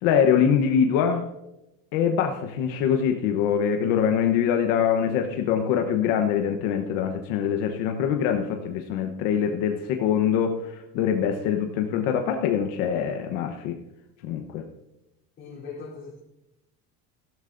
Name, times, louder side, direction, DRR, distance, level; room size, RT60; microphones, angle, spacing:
voice 1, 0.0-1.3 1.9-10.6 10.9-13.8 14.2-14.6, left 8 dB, 75° left, 4 dB, 1.1 m, -24 dB
voice 2, 15.4-16.2, left 4 dB, 30° left, -5 dB, 3.6 m, -39 dB
15.5 x 12.5 x 2.6 m, 0.91 s
cardioid pair, 170°, 39 cm